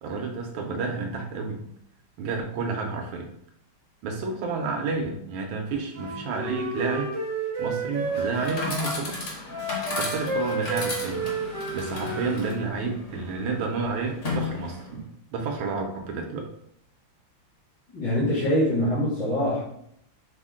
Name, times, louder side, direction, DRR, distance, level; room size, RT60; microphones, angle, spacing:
voice 1, 0.0-1.6 2.2-3.3 4.0-7.1 7.6-9.3 10.0-11.3 11.7-16.4, right 4 dB, 80° right, 2 dB, 1.5 m, -30 dB
Wind instrument woodwind instrument, 5.9-9.0 9.5-12.7, right 3 dB, 55° right, 0.9 m, -31 dB
Chatter / Coin (dropping), 8.0-15.0, left 3 dB, 50° left, 1.0 m, -35 dB
voice 2, 17.9-19.6, equal, 75° left, -11 dB, 2.6 m, -24 dB
5.6 x 2.1 x 3.6 m, 0.72 s
omnidirectional pair, 2.2 m